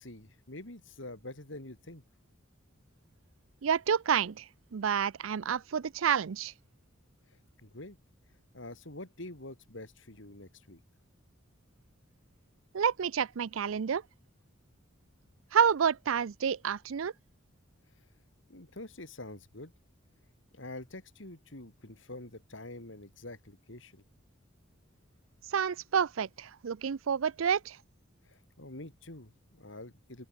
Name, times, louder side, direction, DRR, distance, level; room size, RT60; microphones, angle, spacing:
voice 1, 0.0-2.0 7.3-8.0 8.5-10.8 18.5-19.7 20.5-24.0 28.2-30.3, left 2 dB, 65° left, 3.6 m, -46 dB
voice 2, 3.6-6.5 12.7-14.0 15.5-17.1 25.5-27.8, right 7 dB, 75° right, 0.5 m, -29 dB
open air
head